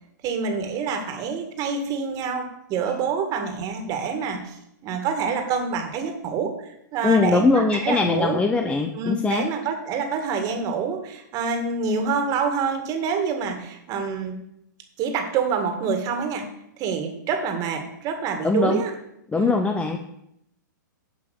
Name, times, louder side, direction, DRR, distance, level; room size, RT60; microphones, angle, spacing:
voice 1, 0.2-4.6 4.8-8.4 8.9-14.4 15.0-16.5 16.8-18.9 19.3-19.5, right 5 dB, 35° right, 6 dB, 2.0 m, -26 dB
voice 2, 7.0-9.4 18.4-18.8 19.3-20.0, left 3 dB, 10° left, 5 dB, 0.7 m, -21 dB
11.0 x 5.6 x 7.8 m, 0.78 s
hypercardioid pair, 125°, 10 cm